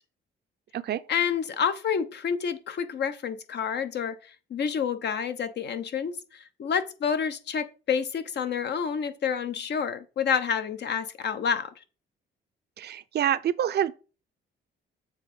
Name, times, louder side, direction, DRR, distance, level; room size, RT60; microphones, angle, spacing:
voice 1, 1.1-11.7, left 7 dB, 60° left, 0.9 m, -29 dB
voice 2, 12.8-13.9, right 10 dB, 55° right, 0.5 m, -27 dB
7.3 x 3.5 x 5.3 m
cardioid pair, 90°, 20 cm